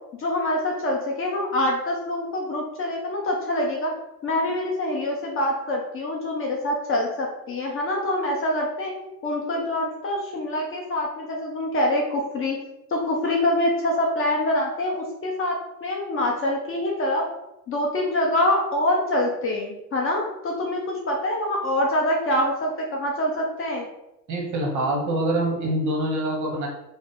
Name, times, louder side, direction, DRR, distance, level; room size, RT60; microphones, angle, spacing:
voice 1, 0.2-3.9 4.2-8.9 9.2-12.6 12.9-17.3 17.7-23.9, left 1 dB, 25° left, -1 dB, 0.6 m, -25 dB
voice 2, 24.3-26.7, right 1 dB, 35° right, 0 dB, 1.1 m, -25 dB
3.3 x 2.1 x 4.0 m, 0.91 s
hypercardioid pair, 90°, 50 cm